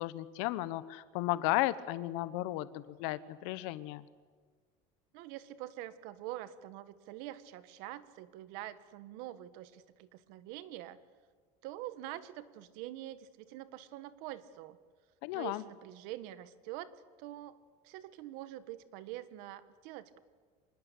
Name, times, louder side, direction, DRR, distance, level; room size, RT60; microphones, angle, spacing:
voice 1, 0.0-4.0 15.2-15.6, left 16 dB, 75° left, 15 dB, 1.1 m, -34 dB
voice 2, 5.1-11.0 11.6-14.8 15.3-16.9 17.2-17.6 17.8-20.2, right 14 dB, 70° right, 13 dB, 1.6 m, -45 dB
26.0 x 21.0 x 8.4 m, 1.5 s
cardioid pair, 165°, 16 cm